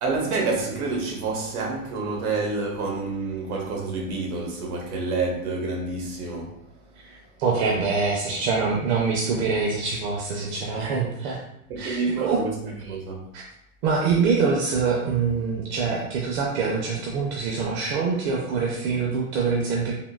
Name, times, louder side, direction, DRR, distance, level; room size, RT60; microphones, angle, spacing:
voice 1, 0.0-6.6 11.8-13.3, right 3 dB, 85° right, 1.1 m, -28 dB
voice 2, 7.0-11.4 11.8-12.4 13.3-13.4 13.8-19.9, right 5 dB, 50° right, 0.6 m, -25 dB
3.6 x 2.2 x 2.3 m
supercardioid pair, 140°, 43 cm